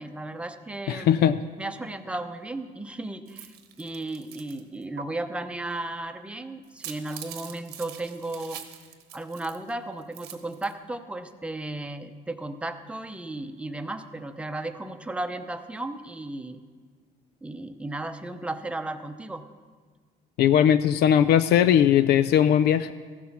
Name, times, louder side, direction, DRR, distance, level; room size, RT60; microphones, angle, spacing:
voice 1, 0.0-1.3 1.6-8.6 9.1-16.6 17.4-19.4, right 2 dB, 5° right, 8 dB, 0.7 m, -35 dB
voice 2, 0.9-1.4 20.4-22.9, left 9 dB, 75° left, 12 dB, 0.4 m, -19 dB
sound 1, 3.3-4.6 5.0-5.1 6.6-9.7 10.0-10.7, right 9 dB, 80° right, 1.1 m, -43 dB
15.0 x 7.4 x 6.0 m, 1.5 s
cardioid pair, 110°, 17 cm